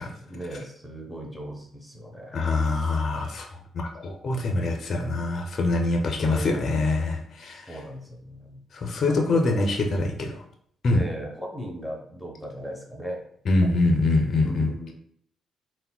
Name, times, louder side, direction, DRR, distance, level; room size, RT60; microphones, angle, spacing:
voice 1, 0.0-2.7 4.3-4.8 6.2-7.0 7.5-8.6 9.0-9.7 10.9-13.2 14.4-14.9, equal, 5° left, 0 dB, 0.6 m, -38 dB
voice 2, 2.3-3.5 3.7-7.7 8.7-10.4 10.8-11.0 13.5-14.7, left 2 dB, 50° left, 2 dB, 0.4 m, -24 dB
3.6 x 2.1 x 2.2 m, 0.63 s
cardioid pair, 90°, 0 cm